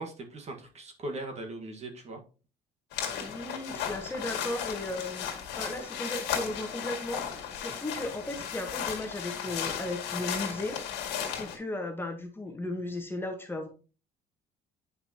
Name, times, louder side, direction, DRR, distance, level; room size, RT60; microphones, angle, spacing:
voice 1, 0.0-2.2, right 2 dB, 40° right, 3 dB, 1.6 m, -39 dB
sound 1, 2.9-11.6, left 8 dB, 90° left, 1.9 m, -35 dB
voice 2, 3.2-10.8 11.2-13.7, left 1 dB, 15° left, 4 dB, 1.3 m, -36 dB
8.4 x 5.3 x 2.9 m, 0.35 s
cardioid pair, 110°, 17 cm